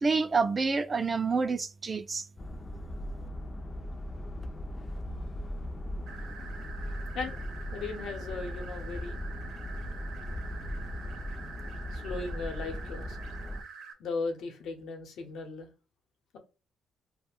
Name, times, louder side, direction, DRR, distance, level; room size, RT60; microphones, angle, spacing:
voice 1, 0.0-2.3, right 4 dB, 30° right, 0.3 m, -28 dB
sound 1, 2.4-13.6, equal, 30° left, 0.4 m, -38 dB
sound 2, 6.1-13.9, right 5 dB, 75° right, 0.7 m, -46 dB
voice 2, 7.7-9.2 11.9-13.2 14.0-15.7, left 4 dB, 75° left, 0.8 m, -37 dB
2.3 x 2.1 x 3.4 m
cardioid pair, 90°, 0 cm